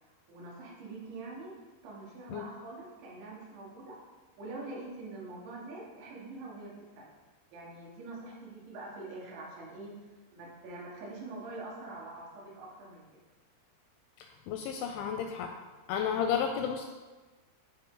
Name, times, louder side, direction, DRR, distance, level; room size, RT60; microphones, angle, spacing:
voice 1, 0.3-1.6 1.8-4.0 4.4-7.1 7.5-9.9 10.3-13.1, right 2 dB, 70° right, -4 dB, 3.7 m, -44 dB
voice 2, 14.2-15.5 15.9-16.9, left 7 dB, 85° left, 4 dB, 2.6 m, -32 dB
11.0 x 4.4 x 3.8 m, 1.3 s
omnidirectional pair, 5.6 m